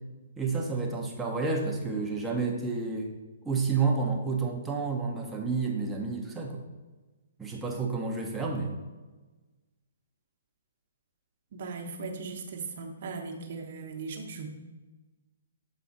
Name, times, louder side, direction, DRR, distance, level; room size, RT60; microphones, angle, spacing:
voice 1, 0.4-3.1 3.4-6.7 7.4-8.7, right 4 dB, 10° right, 0 dB, 0.9 m, -30 dB
voice 2, 11.5-14.5, right 4 dB, 55° right, 1 dB, 1.1 m, -38 dB
7.2 x 4.1 x 4.1 m, 1.2 s
hypercardioid pair, 140°, 0 cm